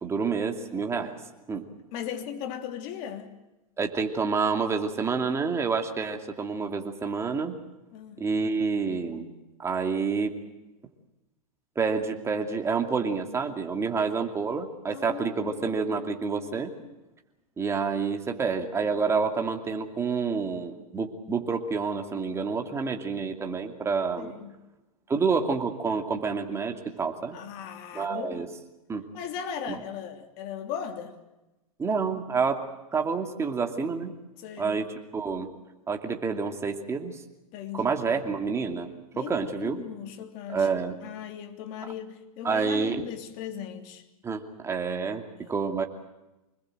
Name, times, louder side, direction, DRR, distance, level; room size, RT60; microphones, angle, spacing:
voice 1, 0.0-1.2 1.5-1.7 3.8-7.6 8.2-9.3 9.6-10.4 11.8-16.7 17.6-24.3 25.1-27.4 27.9-28.5 28.9-29.0 29.7-29.8 31.8-32.6 32.9-34.1 34.6-35.5 35.9-37.2 37.7-39.8 40.5-41.0 42.4-43.0 44.2-45.2 45.5-45.8, right 5 dB, 15° right, 4 dB, 2.6 m, -28 dB
voice 2, 1.9-3.3 7.9-8.2 14.9-16.9 24.2-24.5 27.3-28.6 29.1-31.2 34.4-34.8 37.5-37.9 39.1-40.7 41.0-44.0 45.4-45.6, left 8 dB, 45° left, 6 dB, 3.1 m, -38 dB
25.5 x 21.0 x 7.9 m, 1.0 s
hypercardioid pair, 125°, 19 cm